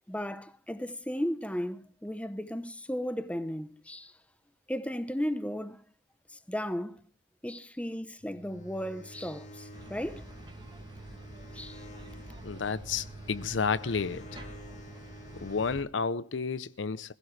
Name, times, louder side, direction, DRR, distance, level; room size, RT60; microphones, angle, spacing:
voice 1, 0.1-4.1 4.7-5.8 6.5-7.0 7.4-10.2 11.5-11.8, equal, 5° left, 0.8 m, -35 dB
sound 1, 8.2-15.8, right 1 dB, 40° left, 1.7 m, -48 dB
sound 2, 9.7-15.8, right 1 dB, 25° right, 2.1 m, -48 dB
voice 2, 12.4-14.3 15.3-17.1, left 5 dB, 80° left, 0.7 m, -31 dB
21.5 x 15.5 x 3.2 m
head